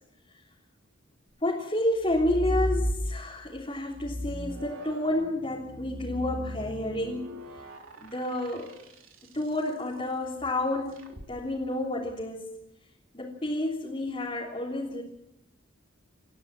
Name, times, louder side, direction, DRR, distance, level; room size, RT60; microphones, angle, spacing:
voice 1, 1.4-7.3 8.0-8.7 9.3-12.5 13.1-15.0, left 1 dB, 25° left, -4 dB, 3.4 m, -30 dB
sound 1, 2.0-3.5 3.9-9.4 11.0-11.3, equal, 75° right, 3.3 m, -35 dB
28.5 x 14.5 x 7.7 m, 0.83 s
head